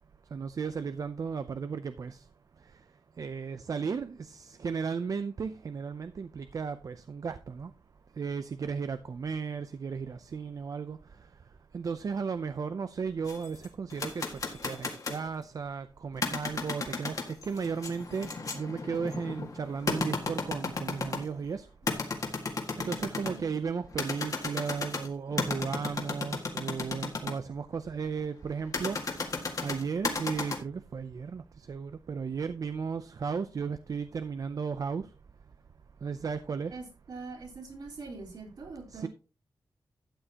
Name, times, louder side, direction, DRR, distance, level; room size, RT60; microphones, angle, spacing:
voice 1, 0.3-2.2 3.2-7.7 8.2-11.0 11.7-18.3 18.5-21.7 22.8-29.0 29.6-35.1 36.0-36.8 38.9-39.1, right 5 dB, 50° right, 0.5 m, -35 dB
sound 1, 13.2-15.3 16.1-21.4 21.9-23.4 23.9-27.3 28.7-30.6, left 4 dB, 45° left, 1.8 m, -34 dB
voice 2, 22.8-23.5 36.7-39.1, right 4 dB, 65° right, 4.0 m, -44 dB
12.5 x 8.9 x 2.9 m
wide cardioid pair, 175°, 8 cm